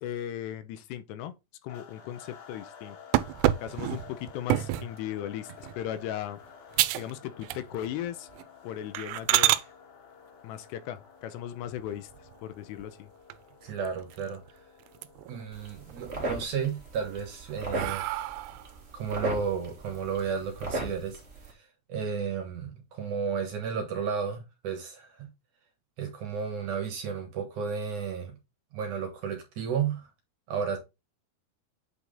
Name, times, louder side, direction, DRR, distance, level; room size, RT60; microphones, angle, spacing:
voice 1, 0.0-1.3 1.6-3.0 3.6-6.4 7.0-8.3 8.6-9.6 10.4-12.1 12.4-13.1, left 11 dB, 85° left, 3.0 m, -37 dB
sound 1, 1.7-18.4, left 6 dB, 55° left, 2.7 m, -52 dB
sound 2, 3.1-4.9 5.5-5.8 6.2-6.3 6.7-7.1 7.4-7.9 8.3-8.4 8.9-9.6 11.7-12.3 12.8-12.9 13.3-13.4 13.7-14.5 14.8-15.4 15.8-16.5 17.0-18.7, right 15 dB, 85° right, 2.7 m, -28 dB
voice 2, 13.6-14.4 15.3-18.2 18.9-21.2 21.5-25.3 26.0-28.3 28.7-30.1 30.5-30.8, right 6 dB, 60° right, 2.4 m, -33 dB
sound 3, 15.5-21.5, right 2 dB, 35° right, 1.0 m, -37 dB
8.6 x 4.8 x 3.8 m
omnidirectional pair, 4.8 m